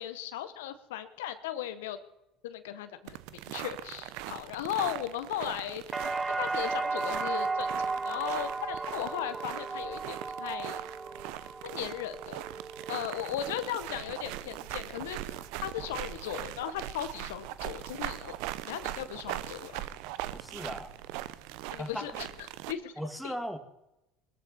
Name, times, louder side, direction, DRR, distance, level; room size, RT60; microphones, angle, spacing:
voice 1, 0.0-2.0 2.4-7.7 8.0-10.8 11.6-12.4 12.9-18.3 18.7-19.9 21.7-22.9 23.2-23.4, left 11 dB, 80° left, 10 dB, 1.1 m, -37 dB
sound 1, 3.1-22.7, right 14 dB, 70° right, 0.8 m, -40 dB
sound 2, 5.9-13.8 14.2-14.9, right 3 dB, 20° right, 0.6 m, -35 dB
voice 2, 20.3-20.9 21.7-22.1 23.0-23.6, equal, ahead, 7 dB, 2.4 m, -37 dB
21.0 x 13.5 x 4.3 m, 0.90 s
hypercardioid pair, 70°, 0 cm